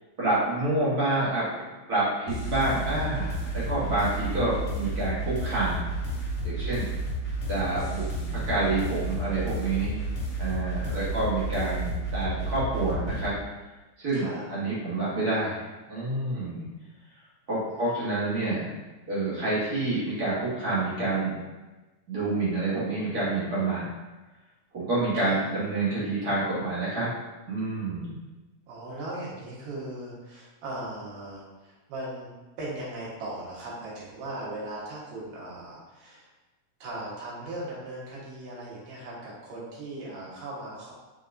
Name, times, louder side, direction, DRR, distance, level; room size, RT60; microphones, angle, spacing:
voice 1, 0.2-1.6 1.9-5.8 6.4-6.9 7.5-8.0 8.5-10.0 10.4-13.3 14.0-15.6 15.9-16.6 17.5-18.7 19.1-21.3 22.1-23.9 24.7-27.1 27.5-28.1, right 2 dB, 45° right, -9 dB, 1.2 m, -28 dB
sound 1, 2.3-13.2, right 1 dB, 50° left, 2.0 m, -31 dB
voice 2, 14.1-14.5 17.7-18.1 25.2-25.4 28.7-32.3 32.6-36.3 36.8-40.9, right 1 dB, 90° right, -6 dB, 2.9 m, -38 dB
5.5 x 3.5 x 2.6 m, 1.1 s
omnidirectional pair, 3.5 m